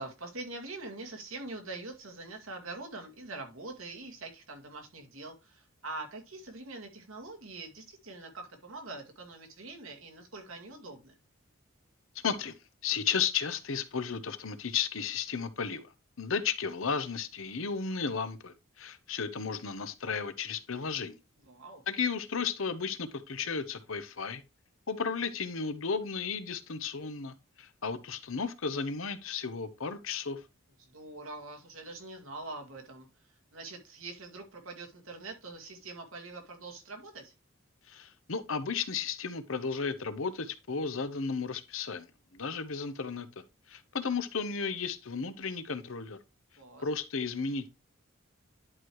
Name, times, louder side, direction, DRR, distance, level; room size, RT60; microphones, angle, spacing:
voice 1, 0.0-11.1 21.4-21.8 30.8-33.1 33.5-37.3 46.6-46.8, right 3 dB, 85° right, 2.1 m, -44 dB
voice 2, 12.1-12.5 12.8-15.9 16.2-21.2 21.9-24.4 24.9-30.4 37.9-42.1 42.3-46.2 46.8-47.7, left 5 dB, 80° left, 0.9 m, -34 dB
11.0 x 4.7 x 3.0 m
head